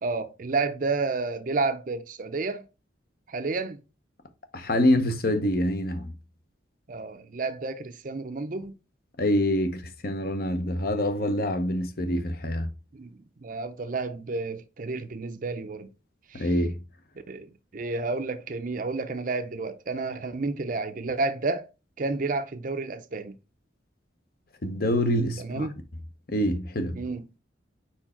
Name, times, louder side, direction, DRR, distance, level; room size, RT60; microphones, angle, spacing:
voice 1, 0.0-2.6 3.3-3.8 6.9-8.7 12.9-15.9 16.3-16.5 17.3-21.7 22.0-23.4 25.4-25.8 26.9-27.2, right 3 dB, 45° right, 0.5 m, -31 dB
voice 2, 4.5-6.1 9.2-12.7 16.3-16.8 24.6-25.7 26.3-27.0, left 1 dB, 50° left, 0.8 m, -26 dB
4.9 x 4.5 x 4.3 m
head